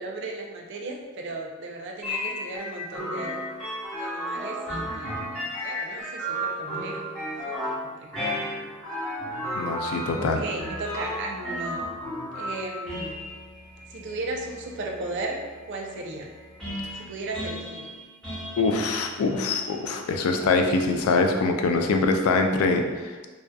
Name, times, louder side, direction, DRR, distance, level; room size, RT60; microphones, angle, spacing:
voice 1, 0.0-3.4 3.9-7.1 7.5-8.1 10.1-11.8 12.4-13.2 13.9-16.3 16.9-17.9, right 2 dB, 60° right, 1 dB, 0.4 m, -36 dB
sound 1, 2.0-20.7, equal, ahead, 1.1 m, -34 dB
voice 2, 9.6-10.5 18.6-23.3, left 3 dB, 85° left, 6 dB, 0.3 m, -24 dB
2.6 x 2.3 x 2.2 m, 1.3 s
head